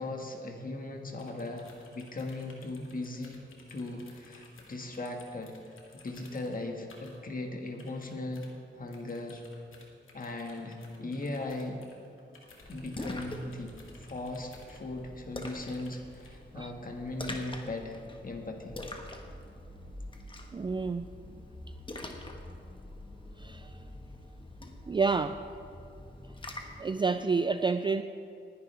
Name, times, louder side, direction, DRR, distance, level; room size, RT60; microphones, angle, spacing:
voice 1, 0.0-3.4 3.7-5.5 5.9-8.5 8.7-9.4 10.1-11.8 12.7-13.7 14.1-18.8, left 2 dB, 45° left, 3 dB, 1.7 m, -38 dB
sound 1, 1.1-7.2 7.6-8.5 8.9-15.1 15.4-16.4, left 3 dB, 85° left, 2.1 m, -57 dB
Splash splatter, 12.6-26.9, left 1 dB, 25° left, 1.4 m, -45 dB
voice 2, 20.5-21.1 23.4-23.8 24.9-25.4 26.8-28.0, right 4 dB, 25° right, 9 dB, 0.4 m, -29 dB
20.0 x 10.5 x 3.4 m, 2.6 s
wide cardioid pair, 90°, 21 cm